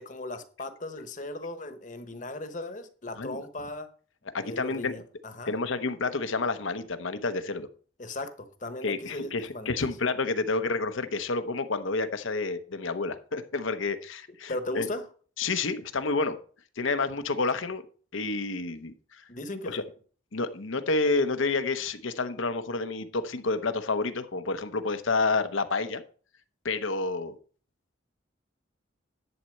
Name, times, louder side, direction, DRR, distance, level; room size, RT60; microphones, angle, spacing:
voice 1, 0.0-3.9 4.4-5.5 8.0-9.9 14.5-15.0 19.3-19.9, left 2 dB, 40° left, 1.1 m, -37 dB
voice 2, 4.3-4.9 5.5-7.7 8.8-14.9 15.4-16.4 16.8-17.8 18.1-19.2 19.6-19.8 20.3-26.0 26.6-27.4, left 3 dB, 75° left, 0.9 m, -29 dB
11.0 x 4.2 x 7.6 m
head